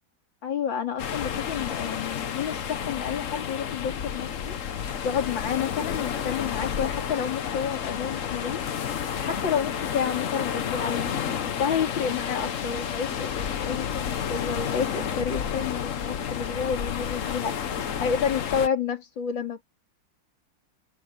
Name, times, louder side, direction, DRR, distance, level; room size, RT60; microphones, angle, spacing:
voice 1, 0.4-4.6 5.0-8.6 9.1-11.2 11.6-17.6 18.0-19.6, left 7 dB, 80° left, 3.3 m, -30 dB
sound 1, 1.0-18.7, left 8 dB, 50° left, 1.2 m, -31 dB
omnidirectional pair, 2.1 m